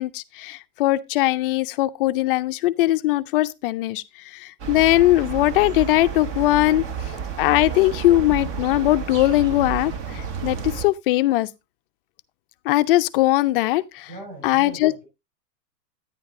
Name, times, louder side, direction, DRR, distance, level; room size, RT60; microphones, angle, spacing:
voice 1, 0.0-6.8 7.4-11.5 12.7-14.1 14.4-15.1, left 16 dB, 35° left, 0.4 m, -20 dB
sound 1, 4.6-10.8, right 6 dB, 40° right, 1.5 m, -31 dB
voice 2, 14.0-15.1, right 2 dB, 90° right, 5.6 m, -40 dB
10.5 x 9.7 x 2.5 m
hypercardioid pair, 125°, 50 cm